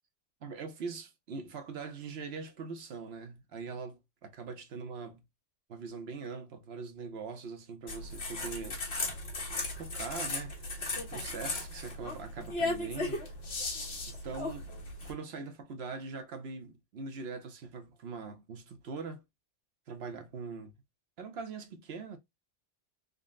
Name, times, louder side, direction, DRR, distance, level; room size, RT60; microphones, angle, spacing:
voice 1, 0.4-5.2 5.7-8.8 9.8-13.2 14.0-14.7 15.0-19.2 19.9-20.7 21.2-22.2, right 4 dB, 60° right, 1.0 m, -42 dB
sound 1, 7.9-15.1, left 2 dB, 60° left, 1.5 m, -36 dB
3.8 x 2.1 x 3.5 m
omnidirectional pair, 1.2 m